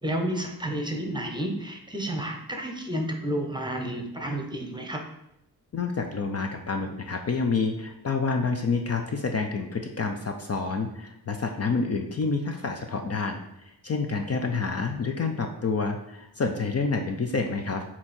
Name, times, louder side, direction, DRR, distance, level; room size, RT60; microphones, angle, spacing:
voice 1, 0.0-5.1, right 1 dB, 10° right, 3 dB, 1.1 m, -31 dB
voice 2, 5.7-13.4 13.6-17.8, left 4 dB, 40° left, 4 dB, 0.7 m, -28 dB
8.3 x 3.0 x 4.3 m, 0.79 s
cardioid pair, 85°, 39 cm